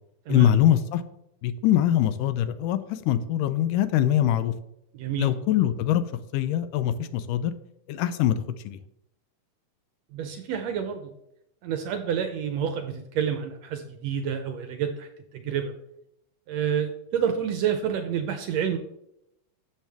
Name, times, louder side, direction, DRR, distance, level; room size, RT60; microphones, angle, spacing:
voice 1, 0.3-1.0 1.4-4.5 5.2-6.0 6.3-7.5 7.9-8.4 8.6-8.8, left 11 dB, 85° left, 13 dB, 2.2 m, -23 dB
voice 2, 4.9-5.3 10.1-11.1 11.6-15.7 16.5-18.8, right 8 dB, 75° right, 7 dB, 1.6 m, -29 dB
12.5 x 7.3 x 3.4 m, 0.80 s
omnidirectional pair, 3.7 m